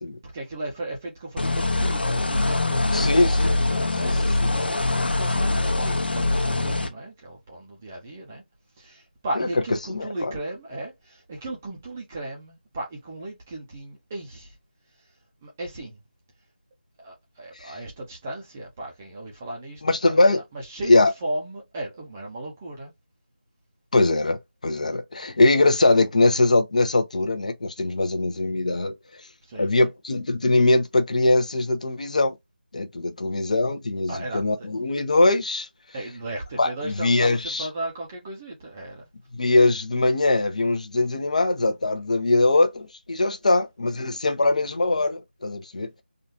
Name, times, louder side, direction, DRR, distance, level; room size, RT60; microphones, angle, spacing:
voice 1, 0.2-3.0 3.4-8.4 8.8-14.5 15.4-16.0 17.0-20.2 20.5-22.9 29.5-29.9 34.1-34.4 35.9-39.0, right 1 dB, 10° right, 0.6 m, -36 dB
sound 1, 1.4-6.9, left 2 dB, 65° left, 1.0 m, -23 dB
voice 2, 2.8-3.5 4.0-4.5 9.4-9.5 9.9-10.3 17.6-17.8 19.8-20.4 20.9-21.1 23.9-24.4 24.6-28.9 29.6-32.4 32.7-35.7 36.6-37.7 39.3-45.9, left 2 dB, 40° left, 0.7 m, -21 dB
3.7 x 2.4 x 2.7 m
figure-of-eight pair, 170°, 6 cm